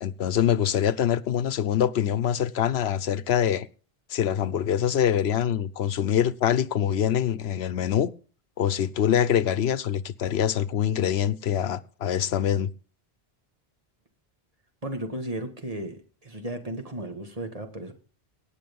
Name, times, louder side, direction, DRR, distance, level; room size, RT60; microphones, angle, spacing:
voice 1, 0.0-3.7 4.1-8.1 8.6-12.7, left 9 dB, 85° left, 1.0 m, -24 dB
voice 2, 14.8-17.9, right 1 dB, 35° right, 2.1 m, -34 dB
18.0 x 6.9 x 5.4 m
omnidirectional pair, 1.0 m